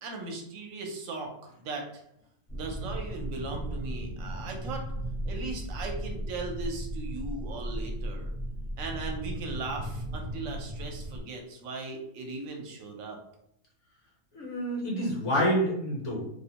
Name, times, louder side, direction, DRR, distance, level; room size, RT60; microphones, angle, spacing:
voice 1, 0.0-2.0 2.5-4.8 5.2-8.3 8.8-13.2 14.4-14.5, right 3 dB, 75° right, 2 dB, 1.0 m, -38 dB
sound 1, 2.5-11.2, right 1 dB, 25° left, 0.4 m, -36 dB
voice 2, 14.3-16.4, equal, 65° left, -3 dB, 0.9 m, -28 dB
2.5 x 2.1 x 2.8 m, 0.77 s
omnidirectional pair, 1.5 m